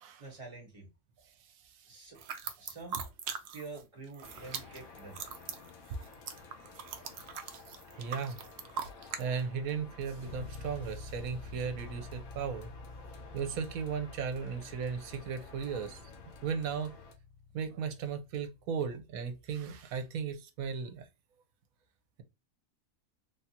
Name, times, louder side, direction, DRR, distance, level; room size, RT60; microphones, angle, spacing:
voice 1, 0.2-0.9 1.9-2.2 2.6-3.0 3.5-5.2, right 3 dB, 25° right, 1.1 m, -47 dB
sound 1, 2.2-9.2, right 6 dB, 65° right, 0.7 m, -41 dB
sound 2, 4.2-17.1, left 4 dB, 85° left, 1.2 m, -53 dB
voice 2, 8.0-8.4 9.2-12.7 13.3-16.0 16.4-17.0 17.5-21.0, right 6 dB, 80° right, 1.1 m, -36 dB
sound 3, 10.3-20.0, left 3 dB, 55° left, 0.5 m, -49 dB
3.4 x 2.3 x 2.7 m
omnidirectional pair, 1.5 m